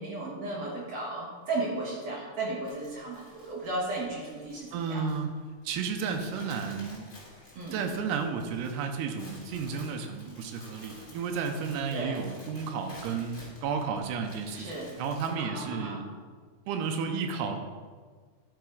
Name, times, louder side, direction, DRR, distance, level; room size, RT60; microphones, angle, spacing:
voice 1, 0.0-5.0 7.5-7.9 11.9-12.3 14.5-15.0 15.4-16.0, right 2 dB, 60° right, -4 dB, 1.7 m, -35 dB
sound 1, 2.6-15.3, left 2 dB, 25° left, 1.2 m, -52 dB
voice 2, 4.7-5.3 5.6-7.1 7.7-14.7 15.0-16.1 16.7-17.6, right 5 dB, 85° right, 4 dB, 2.7 m, -32 dB
11.5 x 4.7 x 4.7 m, 1.5 s
omnidirectional pair, 4.9 m